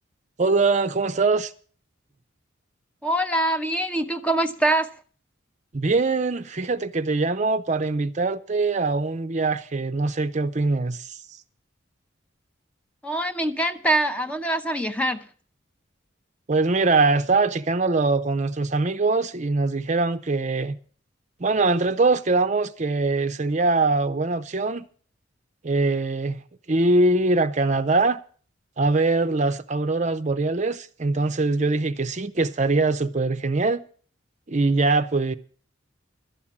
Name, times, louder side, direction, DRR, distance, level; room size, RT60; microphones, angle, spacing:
voice 1, 0.4-1.5 5.7-11.2 16.5-20.8 21.4-24.9 25.6-26.4 26.7-28.2 28.8-33.9 34.5-35.3, right 3 dB, 35° right, 0.6 m, -22 dB
voice 2, 3.0-4.9 13.0-15.3, right 1 dB, 5° left, 0.7 m, -24 dB
12.5 x 8.7 x 7.2 m
head